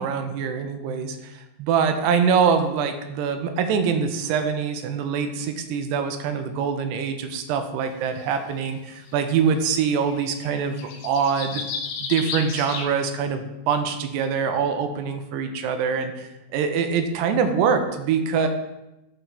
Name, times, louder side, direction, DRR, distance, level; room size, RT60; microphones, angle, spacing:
voice 1, 0.0-11.6 12.0-18.5, right 6 dB, 80° right, 7 dB, 2.5 m, -24 dB
sound 1, 8.2-8.3 9.3-9.4 9.7-12.9, left 5 dB, 80° left, 3.1 m, -33 dB
12.0 x 4.5 x 3.4 m, 0.95 s
omnidirectional pair, 5.3 m